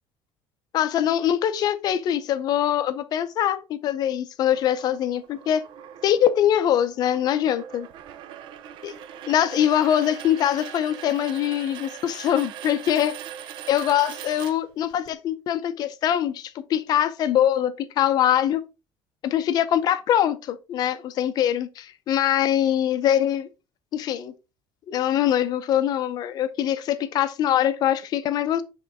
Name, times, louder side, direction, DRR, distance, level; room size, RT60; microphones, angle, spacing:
voice 1, 0.7-5.6 6.0-7.9 8.8-8.9 9.3-13.1 13.7-18.6 19.2-23.5 23.9-24.3 24.9-28.6, left 10 dB, 40° left, 0.6 m, -23 dB
sound 1, 4.5-15.1, right 10 dB, 50° right, 0.5 m, -41 dB
7.6 x 3.7 x 3.5 m
cardioid pair, 175°, 11 cm